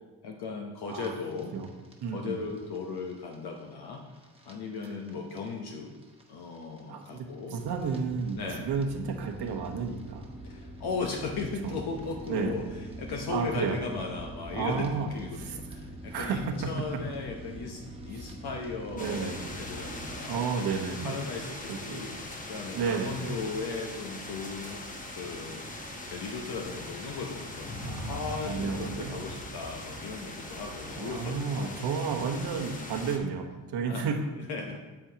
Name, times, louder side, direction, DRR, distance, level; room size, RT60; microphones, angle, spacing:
voice 1, 0.2-1.5 2.1-4.0 4.4-5.9 6.3-7.6 8.4-8.7 10.4-20.7 21.0-22.1 22.4-24.8 25.1-31.7 33.9-34.1 34.3-34.8, left 4 dB, 70° left, 1 dB, 0.9 m, -37 dB
sound 1, 0.8-20.2, right 1 dB, 15° right, 1.1 m, -45 dB
voice 2, 2.0-2.4 6.9-7.2 7.5-10.3 11.6-11.7 12.3-12.6 13.3-13.8 14.5-15.1 15.3-15.6 16.1-16.6 18.1-18.3 19.0-19.4 20.3-21.2 21.7-22.1 22.7-23.4 27.8-28.2 28.4-29.3 30.9-34.2, right 5 dB, 80° right, 2 dB, 1.2 m, -32 dB
sound 2, 19.0-33.2, left 1 dB, 20° left, 1.0 m, -40 dB
8.6 x 7.9 x 2.9 m, 1.2 s
cardioid pair, 115°, 39 cm